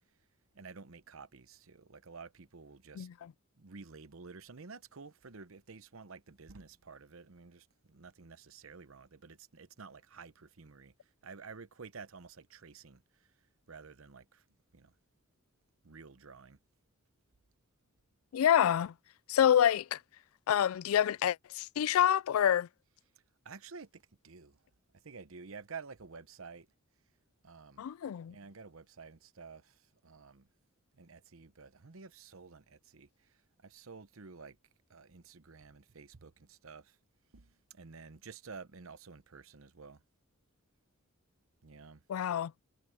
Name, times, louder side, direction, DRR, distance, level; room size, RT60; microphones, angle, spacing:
voice 1, 0.5-3.1 3.6-10.9 11.2-13.3 13.7-14.4 14.7-14.9 15.8-16.6 23.4-24.6 25.0-26.7 27.4-27.8 28.3-30.5 30.9-34.6 34.9-37.0 37.3-40.0 41.6-42.0, right 4 dB, 70° right, 0.9 m, -51 dB
voice 2, 3.0-3.3 18.3-18.9 19.3-20.0 20.5-22.7 27.8-28.3 42.1-42.5, left 9 dB, 75° left, 0.3 m, -27 dB
head